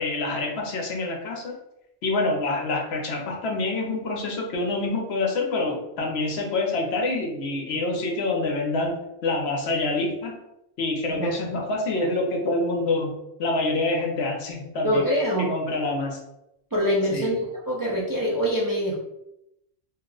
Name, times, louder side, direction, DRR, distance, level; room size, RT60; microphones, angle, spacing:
voice 1, 0.0-1.6 2.0-10.4 10.8-13.1 13.4-15.1 15.4-16.2 17.1-17.3, left 2 dB, 75° left, 1 dB, 0.9 m, -26 dB
voice 2, 14.8-15.5 16.7-17.4 17.7-19.0, equal, 25° right, -5 dB, 0.5 m, -24 dB
2.9 x 2.1 x 3.7 m, 0.84 s
omnidirectional pair, 1.1 m